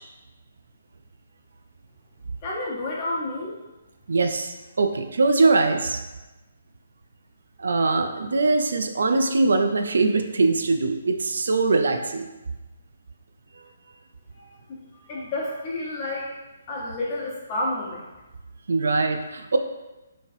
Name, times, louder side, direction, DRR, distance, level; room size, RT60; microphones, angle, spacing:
voice 1, 2.4-3.5 14.3-16.3 16.7-18.1, left 2 dB, 30° left, -4 dB, 1.0 m, -30 dB
voice 2, 4.1-6.0 7.6-12.3 13.6-13.7 18.7-19.6, right 3 dB, 80° right, 6 dB, 0.4 m, -22 dB
4.1 x 3.2 x 2.7 m, 1.1 s
hypercardioid pair, 155°, 0 cm